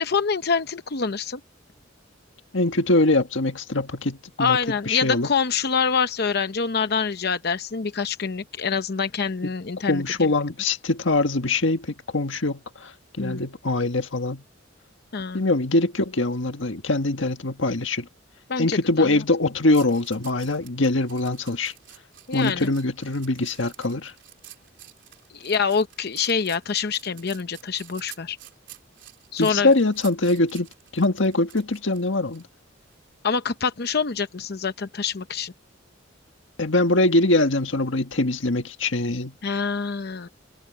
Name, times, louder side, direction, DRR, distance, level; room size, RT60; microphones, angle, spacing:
voice 1, 0.0-1.4 4.4-10.0 13.2-13.4 15.1-15.4 18.5-19.2 22.3-22.7 25.3-28.4 29.3-29.7 33.2-35.5 39.4-40.3, left 5 dB, 55° left, 0.7 m, -25 dB
voice 2, 2.5-4.6 4.9-5.3 9.9-12.9 13.2-14.4 15.3-18.1 18.6-21.7 22.3-24.1 29.4-30.7 30.9-32.5 36.6-39.3, left 2 dB, 75° left, 1.7 m, -23 dB
sound 1, 19.7-32.4 32.9-33.1, right 13 dB, 65° right, 4.3 m, -48 dB
head